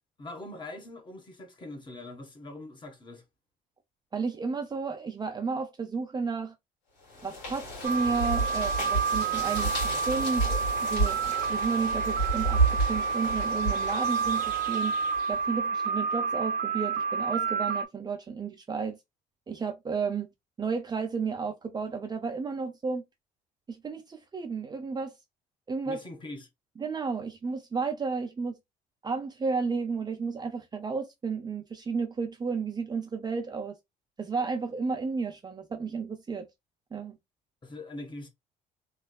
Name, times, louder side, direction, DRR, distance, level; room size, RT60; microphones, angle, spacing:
voice 1, 0.2-3.2 25.8-26.5 37.6-38.3, left 2 dB, 30° left, 1.3 m, -42 dB
voice 2, 4.1-6.5 7.2-14.9 15.3-19.0 19.5-20.3 20.6-23.0 23.7-25.1 25.7-26.0 26.8-28.5 29.0-33.8 34.2-36.5 36.9-37.2, right 5 dB, 25° right, 0.6 m, -32 dB
sound 1, 7.0-15.4, right 3 dB, 90° left, 2.4 m, -31 dB
sound 2, 7.8-17.9, right 5 dB, 70° right, 0.9 m, -29 dB
3.4 x 3.2 x 2.3 m
cardioid pair, 110°, 17 cm